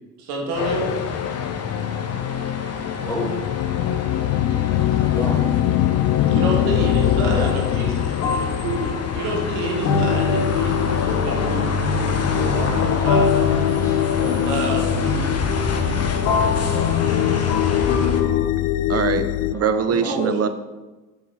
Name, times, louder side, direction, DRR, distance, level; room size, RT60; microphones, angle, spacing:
voice 1, 0.2-0.9 6.3-13.6 14.2-15.4 20.1-20.5, right 3 dB, 80° right, 0 dB, 1.8 m, -28 dB
sound 1, 0.5-18.2, left 4 dB, 40° left, 1.1 m, -29 dB
sound 2, 0.6-19.5, left 13 dB, 55° left, 0.5 m, -23 dB
voice 2, 2.9-3.3 4.9-5.5 7.0-7.6 13.7-14.0 19.5-20.2, left 1 dB, 10° left, -2 dB, 2.4 m, -31 dB
sound 3, 7.3-7.6 8.2-18.5, left 4 dB, 85° left, 1.0 m, -25 dB
voice 3, 18.9-20.5, right 7 dB, 40° right, 10 dB, 0.8 m, -23 dB
6.1 x 5.5 x 5.4 m, 1.2 s
hypercardioid pair, 60°, 39 cm